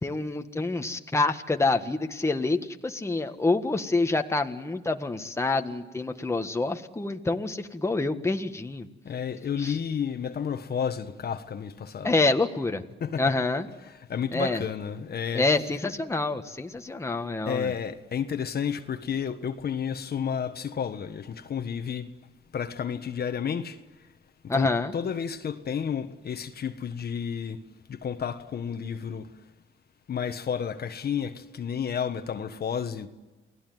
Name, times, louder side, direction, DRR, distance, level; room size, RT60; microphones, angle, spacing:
voice 1, 0.0-8.9 9.6-9.8 12.0-12.8 13.2-13.7 14.3-14.6 15.3-17.7 24.5-24.9, left 3 dB, 15° left, 1.6 m, -27 dB
voice 2, 9.0-12.1 13.0-13.3 14.1-15.4 17.5-22.1 22.5-23.8 24.4-27.6 27.9-29.3 30.1-33.1, left 7 dB, 50° left, 1.5 m, -31 dB
29.0 x 18.0 x 9.4 m
cardioid pair, 90°, 20 cm